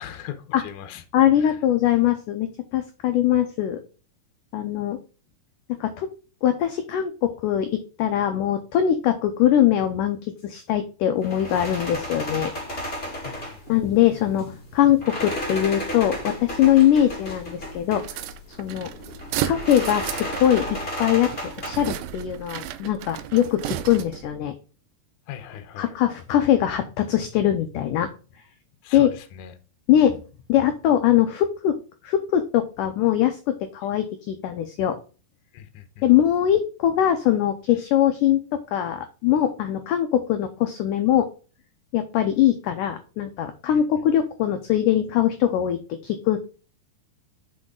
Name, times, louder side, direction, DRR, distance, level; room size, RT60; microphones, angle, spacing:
voice 1, 0.0-1.0 1.3-1.6 13.2-13.6 25.3-25.9 28.8-29.5 35.5-36.1 43.7-43.8, left 10 dB, 70° left, 2.0 m, -39 dB
voice 2, 1.1-3.8 4.5-5.0 5.8-6.1 6.4-12.5 13.7-18.2 18.6-18.9 19.4-20.7 21.0-24.6 25.8-28.1 28.9-29.1 29.9-30.2 30.5-31.8 32.0-35.0 36.0-41.3 41.9-46.4, left 11 dB, 85° left, 1.8 m, -22 dB
sound 1, 11.2-22.0, left 1 dB, 20° left, 1.7 m, -34 dB
sound 2, 18.0-24.3, right 11 dB, 80° right, 2.1 m, -33 dB
6.3 x 5.6 x 3.7 m
omnidirectional pair, 4.6 m